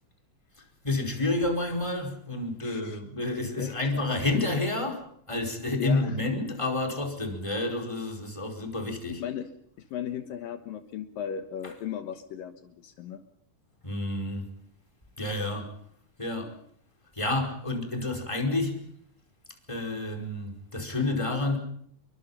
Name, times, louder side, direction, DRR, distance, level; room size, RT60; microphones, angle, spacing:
voice 1, 0.8-9.2 11.6-11.7 13.8-14.5 15.2-15.8 16.2-16.6 17.1-18.8 19.7-21.6, left 2 dB, 10° left, 4.7 m, -29 dB
voice 2, 2.6-3.0 3.6-4.1 4.3-4.5 5.6-6.2 9.2-9.5 9.9-13.2, left 9 dB, 75° left, 2.9 m, -36 dB
28.5 x 23.5 x 5.7 m
omnidirectional pair, 4.2 m